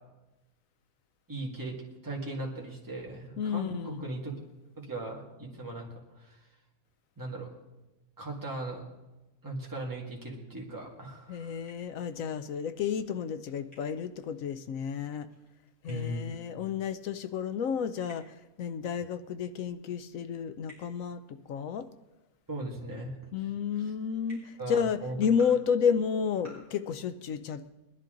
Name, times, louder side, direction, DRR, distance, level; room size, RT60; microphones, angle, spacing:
voice 1, 1.3-1.8 2.0-4.4 4.8-6.4 7.2-7.5 8.2-8.8 9.4-11.6 15.9-16.3 22.5-23.1 24.6-25.2, right 1 dB, 10° right, -3 dB, 2.1 m, -38 dB
voice 2, 3.4-4.1 11.3-15.3 15.8-21.9 23.3-27.7, left 7 dB, 65° left, 11 dB, 0.9 m, -31 dB
sound 1, 10.9-12.5 12.8-16.8 17.0-18.7 19.0-19.1 19.4-19.5 20.7-20.8 22.9-23.0 24.3-24.4 25.2-25.5 26.3-26.5, equal, 25° left, 5.6 m, -57 dB
20.5 x 11.0 x 3.9 m, 1.1 s
omnidirectional pair, 1.6 m